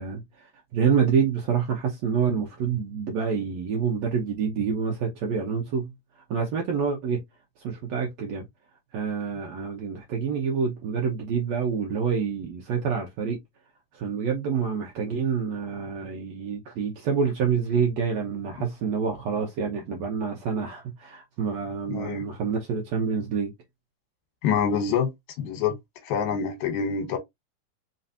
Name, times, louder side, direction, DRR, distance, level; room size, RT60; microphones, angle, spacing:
voice 1, 0.0-5.9 6.3-7.2 7.6-8.4 8.9-13.4 13.9-23.5, right 6 dB, 80° right, 1.5 m, -27 dB
voice 2, 21.9-22.3 24.4-25.8 26.0-27.2, left 7 dB, 75° left, 2.7 m, -26 dB
5.6 x 3.2 x 2.7 m
omnidirectional pair, 4.3 m